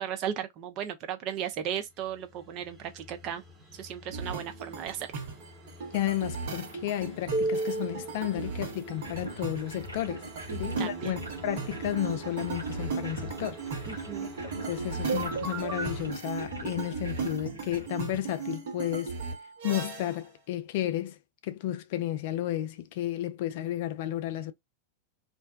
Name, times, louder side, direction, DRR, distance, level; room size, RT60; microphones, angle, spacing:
voice 1, 0.0-3.4 3.7-5.2 10.5-11.1 13.9-14.3, right 9 dB, 40° right, 0.6 m, -36 dB
sound 1, 1.5-16.1, right 2 dB, 20° right, 1.1 m, -49 dB
sound 2, 4.1-20.2, right 4 dB, 55° right, 1.0 m, -35 dB
voice 2, 5.9-10.3 10.6-13.6 14.4-19.1 19.6-21.2 21.4-24.5, left 13 dB, 50° left, 0.4 m, -32 dB
sound 3, 8.9-17.9, equal, 90° right, 1.1 m, -43 dB
2.5 x 2.1 x 2.4 m
figure-of-eight pair, 90°, 0 cm